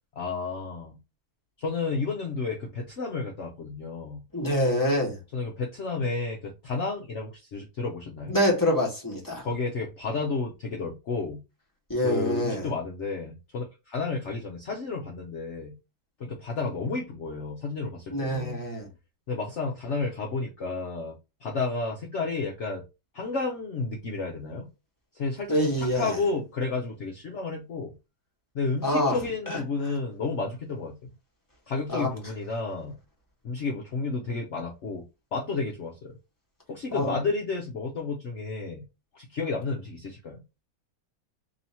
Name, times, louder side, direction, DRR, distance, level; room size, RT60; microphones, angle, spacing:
voice 1, 0.2-1.0 1.6-4.2 5.3-8.4 9.4-11.4 12.0-15.8 16.2-18.6 19.3-22.9 23.1-24.7 25.1-27.9 28.5-31.1 31.7-32.9 33.4-35.0 35.3-36.2 36.7-38.8 39.1-40.4, left 4 dB, 55° left, 0.9 m, -31 dB
voice 2, 4.3-5.2 8.3-9.5 11.9-12.7 18.1-18.9 25.5-26.2 28.8-29.2 29.5-29.9 31.9-32.1 36.9-37.2, left 1 dB, 15° left, 1.3 m, -26 dB
3.1 x 2.8 x 4.2 m
omnidirectional pair, 1.8 m